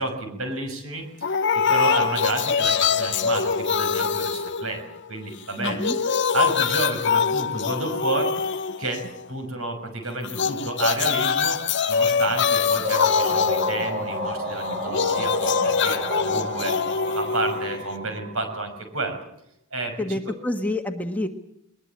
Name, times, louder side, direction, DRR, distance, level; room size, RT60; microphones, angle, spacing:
voice 1, 0.0-4.8 5.1-8.3 8.8-9.0 9.3-11.6 11.9-16.7 17.1-19.2 19.7-20.2, right 2 dB, 65° right, 5 dB, 6.0 m, -30 dB
sound 1, 1.2-5.2 5.5-9.3 10.2-18.2, left 6 dB, 50° left, 1.0 m, -24 dB
voice 2, 5.6-6.0 20.0-21.3, left 1 dB, 5° left, 4 dB, 1.5 m, -27 dB
sound 2, 12.8-18.6, equal, 40° right, 4.3 m, -31 dB
21.5 x 21.5 x 8.7 m, 0.77 s
head